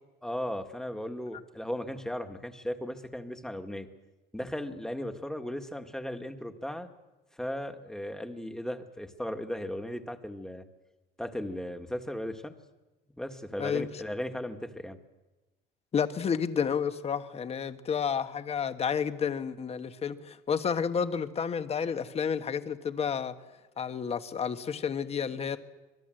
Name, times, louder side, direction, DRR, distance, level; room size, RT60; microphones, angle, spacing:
voice 1, 0.2-3.9 4.3-6.9 7.3-10.6 11.2-12.5 13.2-15.0, left 1 dB, 5° left, 1.7 m, -36 dB
voice 2, 15.9-23.3 23.8-25.6, left 7 dB, 30° left, 1.3 m, -30 dB
25.5 x 20.5 x 7.8 m
cardioid pair, 135°, 20 cm